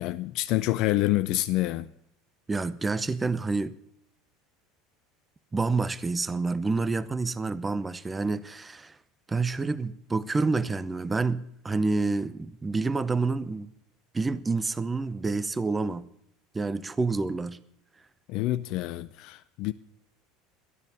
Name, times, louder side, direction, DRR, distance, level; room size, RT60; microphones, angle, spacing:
voice 1, 0.0-1.9 18.3-19.7, left 16 dB, 60° left, 0.5 m, -27 dB
voice 2, 2.5-3.7 5.5-8.9 9.3-13.7 14.1-16.1 16.5-17.6, right 3 dB, 20° right, 0.7 m, -28 dB
12.5 x 10.5 x 6.9 m
hypercardioid pair, 80°, 0 cm